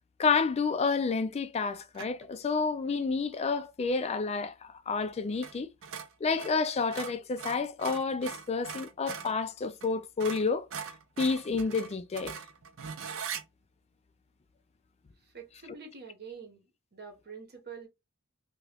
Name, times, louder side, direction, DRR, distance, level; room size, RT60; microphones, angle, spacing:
voice 1, 0.2-5.7 6.2-10.7 11.2-12.3, left 4 dB, 30° left, 0.3 m, -30 dB
sound 1, 1.9-2.3 5.4-5.6 5.8-9.4 9.8-9.9 10.2-13.4, right 6 dB, 60° right, 0.5 m, -41 dB
voice 2, 15.3-16.7 16.9-17.9, right 5 dB, 45° right, 1.0 m, -46 dB
2.8 x 2.4 x 3.3 m
head